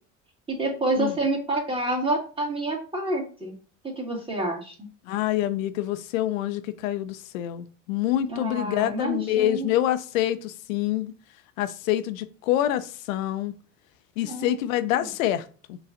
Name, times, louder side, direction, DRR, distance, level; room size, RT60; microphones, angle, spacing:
voice 1, 0.5-3.5 3.8-4.7 8.3-9.7 14.2-14.6, right 2 dB, 15° right, 1.9 m, -28 dB
voice 2, 5.1-11.1 11.6-13.5 14.2-15.8, left 13 dB, 75° left, 0.5 m, -26 dB
5.8 x 3.1 x 2.5 m
hypercardioid pair, 65°, 40 cm